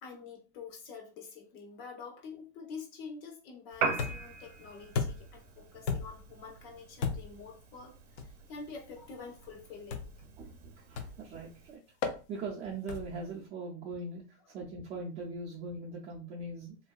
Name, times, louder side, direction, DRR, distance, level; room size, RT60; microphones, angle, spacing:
voice 1, 0.0-10.1, left 5 dB, 50° left, 1 dB, 1.0 m, -47 dB
Piano, 3.7-11.8, right 5 dB, 65° right, 0.7 m, -41 dB
sound 1, 4.0-4.4 5.0-5.4 5.9-6.3 7.0-7.4 8.2-8.4 9.9-10.3 11.0-11.3 12.0-12.2 12.9-13.2, left 5 dB, 75° left, 0.6 m, -35 dB
voice 2, 10.4-11.8 12.3-14.2 14.5-16.8, right 3 dB, 20° right, -5 dB, 0.3 m, -40 dB
3.0 x 2.6 x 2.3 m, 0.35 s
supercardioid pair, 155°, 37 cm